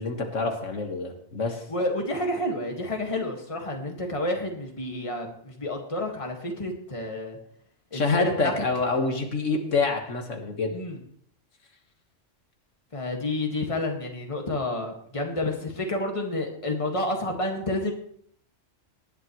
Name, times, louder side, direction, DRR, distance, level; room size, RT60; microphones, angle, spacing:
voice 1, 0.0-1.6 7.9-10.7, left 3 dB, 80° left, 3 dB, 2.0 m, -27 dB
voice 2, 1.7-7.4 7.9-8.5 10.7-11.0 12.9-17.9, left 1 dB, 25° left, 2 dB, 1.9 m, -29 dB
19.0 x 10.5 x 3.2 m, 0.63 s
omnidirectional pair, 1.3 m